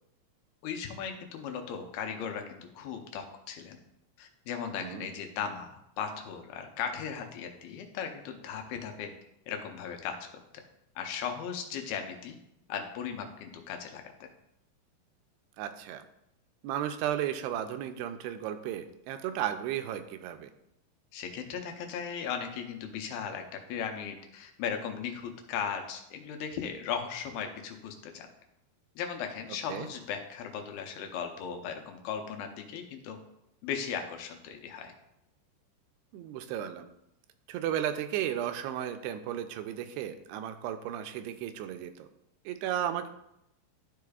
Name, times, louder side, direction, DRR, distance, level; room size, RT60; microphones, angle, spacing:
voice 1, 0.6-3.8 4.2-9.1 9.5-10.1 11.0-12.4 12.7-14.0 21.1-23.4 23.7-28.3 29.0-33.2 33.6-34.9, left 7 dB, 75° left, 4 dB, 2.5 m, -37 dB
voice 2, 15.6-16.0 16.6-20.5 29.7-29.9 36.1-36.9 37.5-42.1 42.5-43.1, right 10 dB, 90° right, 9 dB, 2.6 m, -34 dB
12.5 x 5.0 x 2.3 m, 0.82 s
omnidirectional pair, 4.5 m